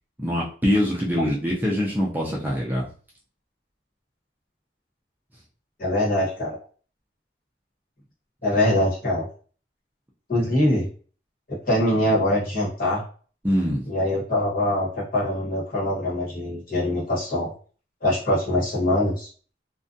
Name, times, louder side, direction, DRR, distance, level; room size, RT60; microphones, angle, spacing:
voice 1, 0.2-2.9 13.4-13.8, equal, 10° right, -4 dB, 0.4 m, -23 dB
voice 2, 5.8-6.6 8.4-9.2 10.3-10.9 11.7-13.0 13.9-17.5 18.0-19.3, left 1 dB, 50° left, -6 dB, 1.1 m, -23 dB
2.5 x 2.2 x 2.5 m, 0.41 s
head